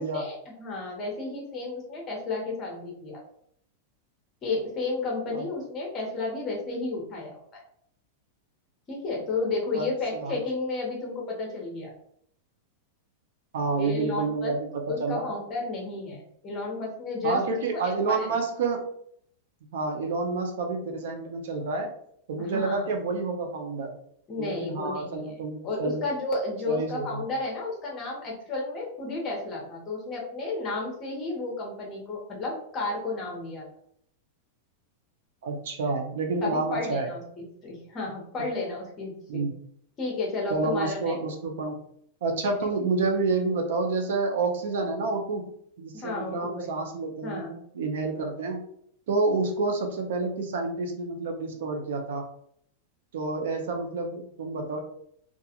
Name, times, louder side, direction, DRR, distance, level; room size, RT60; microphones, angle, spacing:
voice 1, 0.0-3.2 4.4-7.6 8.9-11.9 13.8-14.5 14.9-17.4 17.7-18.3 22.4-22.9 24.3-25.3 25.6-33.7 36.4-39.5 40.0-41.2 45.9-46.6 47.2-47.6, left 3 dB, 25° left, -1 dB, 0.9 m, -32 dB
voice 2, 13.5-15.2 17.2-18.9 19.7-21.9 22.3-24.0 24.4-26.0 26.7-27.2 35.4-37.1 39.3-39.6 40.5-41.8 42.2-45.5 45.8-47.4 47.7-48.6 49.1-52.3 53.1-54.8, right 3 dB, 75° right, 3 dB, 0.6 m, -29 dB
2.4 x 2.4 x 2.8 m, 0.67 s
supercardioid pair, 160°, 0 cm